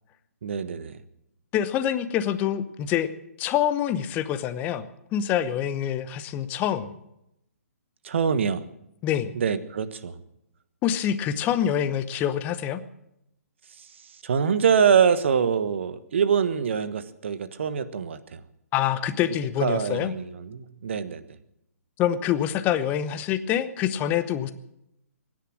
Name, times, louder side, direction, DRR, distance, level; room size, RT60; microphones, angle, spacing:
voice 1, 0.4-1.0 8.0-8.6 9.3-10.2 13.8-13.9 14.2-18.4 19.6-21.4, right 7 dB, 50° right, 13 dB, 1.3 m, -24 dB
voice 2, 1.5-3.1 3.4-7.0 9.0-9.3 10.8-12.8 18.7-20.1 22.0-24.5, left 10 dB, 20° left, 13 dB, 0.9 m, -26 dB
22.5 x 10.5 x 6.2 m, 0.82 s
figure-of-eight pair, 125°, 8 cm